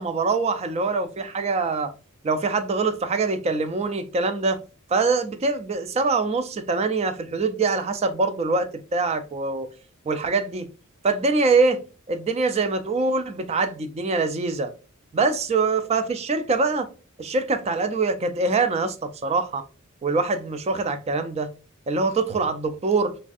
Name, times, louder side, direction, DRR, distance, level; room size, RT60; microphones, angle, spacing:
voice 1, 0.0-1.9 2.2-4.6 4.9-9.7 10.1-10.7 11.0-11.8 12.1-14.7 15.1-16.9 17.2-19.6 20.0-21.5 21.9-23.2, right 3 dB, 30° right, 0.3 m, -24 dB
3.2 x 2.5 x 2.3 m
head